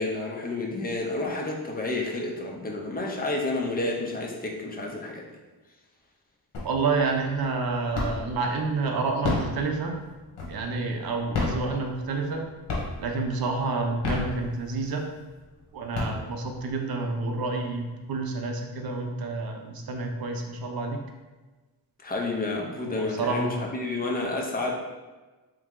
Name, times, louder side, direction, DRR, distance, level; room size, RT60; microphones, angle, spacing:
voice 1, 0.0-5.3 22.0-24.7, left 2 dB, 20° left, 0 dB, 0.5 m, -30 dB
sound 1, 6.5-7.0 7.4-8.4 9.0-10.8 11.2-12.4 12.7-13.2 13.8-14.9 15.4-15.5 15.8-16.7, left 3 dB, 80° left, 1.1 m, -30 dB
voice 2, 6.6-10.0 10.5-12.4 13.0-15.0 15.7-21.0 22.8-23.6, right 3 dB, 60° right, 3 dB, 0.6 m, -29 dB
3.5 x 3.2 x 3.6 m, 1.2 s
wide cardioid pair, 160°, 42 cm